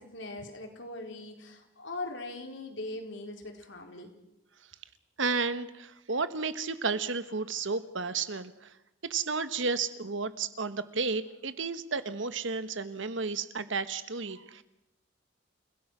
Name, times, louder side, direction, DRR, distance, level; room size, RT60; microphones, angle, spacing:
voice 1, 0.0-4.1, left 2 dB, 65° left, 3 dB, 4.0 m, -40 dB
voice 2, 5.2-8.7 9.1-14.6, right 4 dB, 70° right, 12 dB, 1.3 m, -32 dB
29.5 x 17.0 x 6.2 m, 0.86 s
head